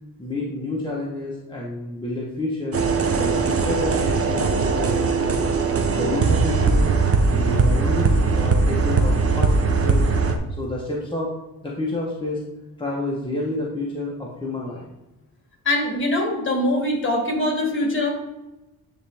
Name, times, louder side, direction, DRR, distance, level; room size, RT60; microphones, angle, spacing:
voice 1, 0.2-2.8 3.1-5.4 5.9-6.9 7.3-9.5 9.8-10.1 10.6-11.3 11.6-12.4 12.8-14.9, left 2 dB, 15° left, -4 dB, 1.0 m, -29 dB
sound 1, 2.7-10.4, right 4 dB, 35° right, 0.8 m, -20 dB
voice 2, 15.6-18.1, left 1 dB, 30° left, 0 dB, 2.2 m, -22 dB
9.6 x 3.3 x 3.4 m, 1.0 s
cardioid pair, 95°, 38 cm